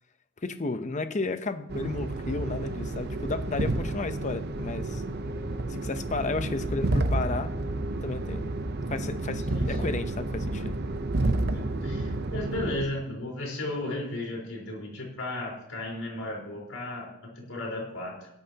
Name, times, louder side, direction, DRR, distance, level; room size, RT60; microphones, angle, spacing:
voice 1, 0.4-5.0 5.7-7.5 8.0-8.5 8.9-10.7, left 3 dB, 35° left, 10 dB, 0.8 m, -33 dB
sound 1, 1.7-12.9, right 2 dB, 50° right, 0.8 m, -30 dB
voice 2, 9.5-9.9 11.5-17.1 17.4-18.3, left 2 dB, 80° left, -2 dB, 4.5 m, -35 dB
17.5 x 12.0 x 2.9 m, 0.80 s
head